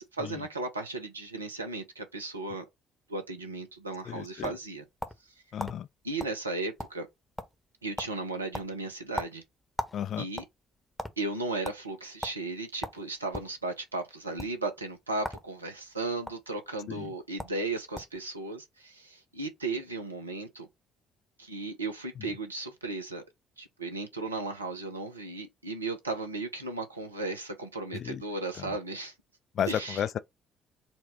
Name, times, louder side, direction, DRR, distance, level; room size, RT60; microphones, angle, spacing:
voice 1, 0.0-2.6 3.1-4.8 6.0-7.1 7.8-9.4 10.2-10.4 11.2-20.7 21.4-23.2 23.6-29.1 29.7-30.1, right 3 dB, 90° right, 0.5 m, -35 dB
sound 1, 3.9-5.3 5.6-5.8 6.2-6.4 6.6-7.1 7.4-7.7 8.0-8.2 8.5-10.0 10.3-11.1 11.6-11.8 12.2-12.4 12.8-13.5 14.3-14.5 15.2-15.5 15.7-16.3 17.1-17.2 17.4-17.6 17.9-18.2, left 1 dB, 10° left, 0.9 m, -37 dB
voice 2, 4.1-4.5 5.5-5.9 9.9-10.2 16.9-17.1 27.9-28.2 29.6-30.2, left 9 dB, 55° left, 0.3 m, -32 dB
4.3 x 2.3 x 4.1 m
figure-of-eight pair, 50°, 0 cm